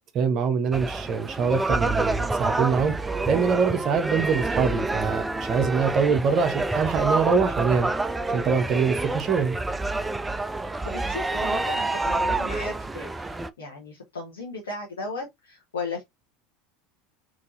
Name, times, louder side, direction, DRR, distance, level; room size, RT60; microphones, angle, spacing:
voice 1, 0.1-2.9 3.3-7.9 8.3-9.6, right 5 dB, 45° right, 0.9 m, -24 dB
sound 1, 0.7-13.5, right 2 dB, 15° right, 0.3 m, -28 dB
voice 2, 10.9-16.0, left 3 dB, 80° left, 1.0 m, -36 dB
3.8 x 2.7 x 2.5 m
hypercardioid pair, 80°, 0 cm